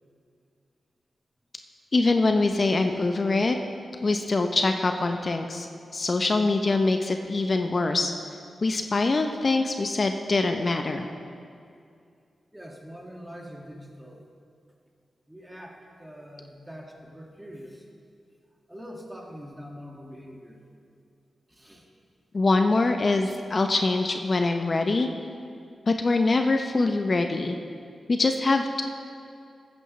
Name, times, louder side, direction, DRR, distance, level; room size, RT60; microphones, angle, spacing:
voice 1, 1.9-3.6 4.0-5.7 5.9-8.1 8.6-11.1 22.3-25.1 25.9-27.6 28.1-28.8, left 3 dB, 50° left, 6 dB, 0.6 m, -24 dB
voice 2, 12.5-14.2 15.3-17.9 18.7-20.6 21.5-21.9, equal, 15° right, 0 dB, 1.9 m, -43 dB
13.5 x 9.4 x 3.2 m, 2.4 s
cardioid pair, 45°, 0 cm